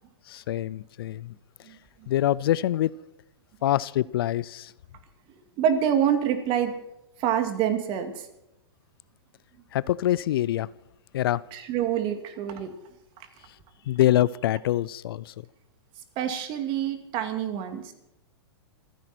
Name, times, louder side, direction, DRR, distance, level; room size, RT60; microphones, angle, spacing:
voice 1, 0.3-1.3 2.1-2.9 3.6-4.7 9.7-10.7 11.1-11.4 13.9-15.3, left 13 dB, 60° left, 0.5 m, -25 dB
voice 2, 5.6-6.8 7.2-8.3 11.5-12.7 16.2-17.9, right 9 dB, 40° right, 2.6 m, -26 dB
27.0 x 10.5 x 4.5 m
hypercardioid pair, 115°, 14 cm